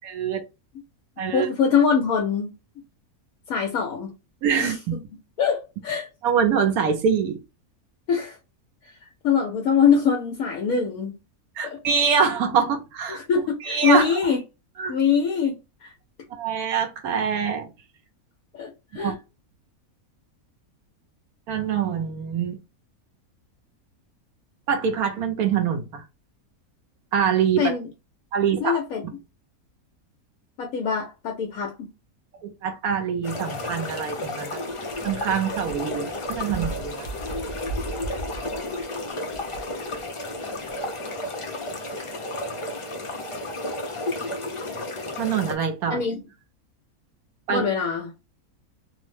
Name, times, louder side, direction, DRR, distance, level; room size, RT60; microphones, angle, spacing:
voice 1, 0.0-0.4 1.2-1.5 4.4-5.0 6.2-7.4 11.6-13.2 13.6-14.2 14.8-14.9 16.3-17.7 19.0-19.1 21.5-22.6 24.7-26.0 27.1-27.6 28.3-28.8 32.4-34.6 35.0-37.1 45.2-46.0 47.5-47.6, right 7 dB, 85° right, 1.2 m, -24 dB
voice 2, 1.3-2.5 3.5-4.1 4.6-4.8 5.4-6.1 8.1-8.4 8.8-11.1 11.6-11.8 13.1-14.4 14.9-15.9 18.5-19.2 27.6-27.9 28.6-29.1 30.6-31.7 45.9-46.2 47.5-48.1, left 6 dB, 75° left, 1.1 m, -23 dB
sound 1, 33.2-45.6, left 1 dB, 55° left, 0.3 m, -32 dB
3.0 x 2.1 x 3.1 m
omnidirectional pair, 1.5 m